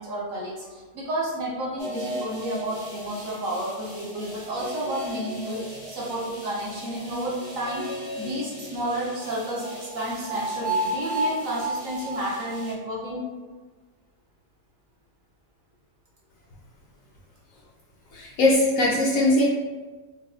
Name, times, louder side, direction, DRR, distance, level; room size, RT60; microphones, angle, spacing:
voice 1, 0.0-7.9 8.2-13.3, right 1 dB, 60° right, -5 dB, 1.0 m, -31 dB
sound 1, 1.8-12.7, right 1 dB, 40° right, 0.4 m, -34 dB
voice 2, 18.1-19.4, left 1 dB, 65° left, -4 dB, 0.9 m, -20 dB
4.7 x 2.1 x 2.3 m, 1.3 s
omnidirectional pair, 1.7 m